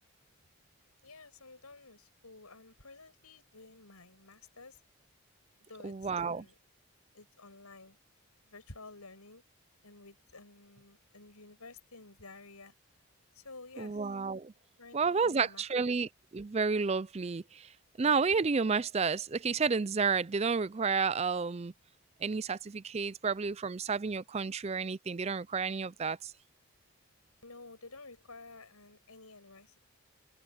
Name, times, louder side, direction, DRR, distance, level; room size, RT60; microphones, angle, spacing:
voice 1, 1.0-4.8 5.7-6.6 7.1-8.0 8.5-9.4 9.8-12.7 13.3-14.1 14.8-15.9 27.4-29.8, left 3 dB, 85° left, 7.5 m, -52 dB
voice 2, 5.8-6.4 13.8-14.5 14.9-17.7 18.0-21.7 22.2-26.3, right 5 dB, 30° right, 0.4 m, -31 dB
open air
head